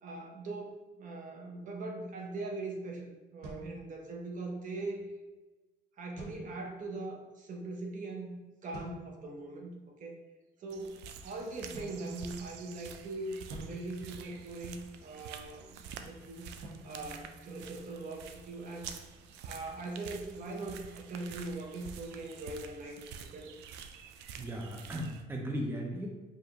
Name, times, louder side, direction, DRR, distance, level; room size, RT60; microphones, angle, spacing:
voice 1, 0.0-5.0 6.0-8.4 8.6-10.2 10.6-16.5 16.8-18.9 19.4-23.5, right 2 dB, 50° right, 1 dB, 0.8 m, -41 dB
sound 1, 3.4-4.5 6.2-7.0 8.7-9.4 11.7-12.8 13.5-15.0 16.6-18.1, right 2 dB, 70° right, 1.2 m, -49 dB
sound 2, 10.7-25.2, right 7 dB, 90° right, 0.4 m, -48 dB
voice 2, 24.4-26.1, equal, 10° right, 0 dB, 0.6 m, -36 dB
5.0 x 2.5 x 2.9 m, 1.2 s
cardioid pair, 110°, 17 cm